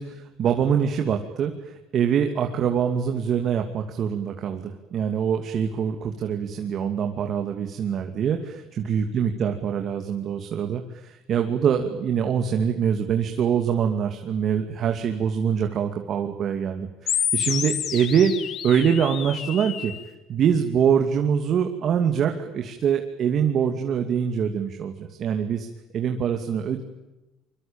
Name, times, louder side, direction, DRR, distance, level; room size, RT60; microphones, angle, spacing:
voice 1, 0.0-8.6 8.9-18.3 18.6-19.9 20.3-25.7 25.9-26.8, right 7 dB, 50° right, 5 dB, 2.6 m, -24 dB
sound 1, 17.1-20.1, left 9 dB, 50° left, 2.3 m, -29 dB
25.0 x 24.0 x 9.0 m, 1.0 s
cardioid pair, 115°, 0 cm